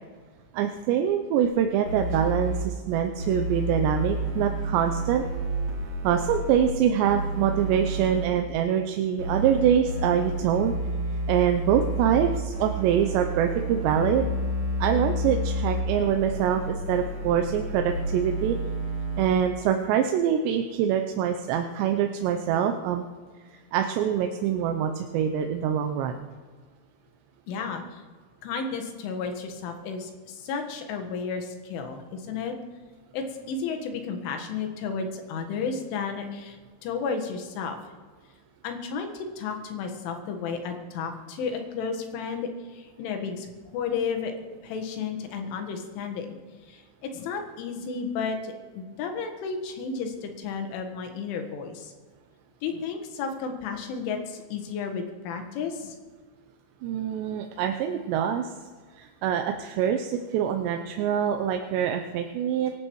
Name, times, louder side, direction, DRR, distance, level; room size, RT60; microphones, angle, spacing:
voice 1, 0.5-5.2 6.0-10.7 11.3-14.3 14.8-18.6 19.2-23.1 23.4-26.3 56.8-58.6 58.9-62.7, right 9 dB, 80° right, 5 dB, 2.8 m, -25 dB
sound 1, 1.4-1.5 1.9-2.6 3.2-6.7 7.0-8.3 9.2-19.3, right 1 dB, 40° right, 3.4 m, -30 dB
voice 2, 27.5-28.0 28.4-32.6 33.1-36.6 36.8-37.8 38.6-44.3 44.6-46.4 46.7-51.9 52.6-56.0, left 5 dB, 90° left, 4 dB, 4.1 m, -32 dB
24.0 x 11.0 x 4.7 m, 1.5 s
omnidirectional pair, 5.4 m